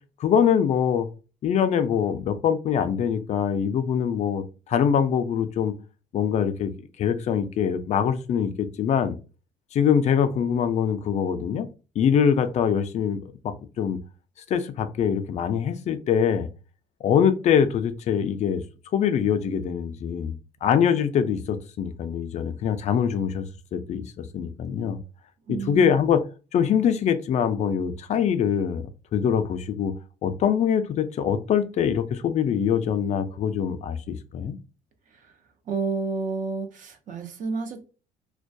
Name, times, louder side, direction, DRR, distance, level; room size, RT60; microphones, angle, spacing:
voice 1, 0.2-1.1 1.4-5.7 6.1-6.7 7.0-9.2 9.7-11.7 12.0-14.0 14.5-16.5 17.0-18.6 18.9-20.3 20.6-23.5 23.7-25.0 25.5-26.2 26.5-28.8 29.1-29.9 30.2-34.6, left 8 dB, 45° left, 10 dB, 0.4 m, -23 dB
voice 2, 25.5-26.0 35.1-35.3 35.7-37.8, right 4 dB, 50° right, 7 dB, 0.5 m, -30 dB
2.2 x 2.2 x 2.6 m, 0.33 s
cardioid pair, 110°, 17 cm